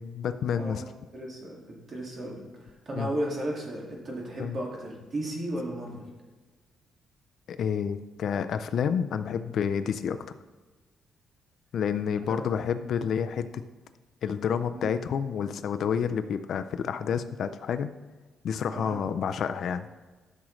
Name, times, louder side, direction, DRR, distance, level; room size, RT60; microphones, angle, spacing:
voice 1, 0.0-0.8 3.0-3.1 4.4-4.6 7.5-10.3 11.7-13.6 14.2-17.9 18.4-19.9, left 7 dB, 50° left, 10 dB, 0.4 m, -29 dB
voice 2, 0.5-6.1 12.3-12.5 14.7-14.9 18.7-19.0, right 1 dB, 35° right, -2 dB, 2.0 m, -35 dB
12.5 x 6.2 x 3.1 m, 1.3 s
cardioid pair, 170°, 0 cm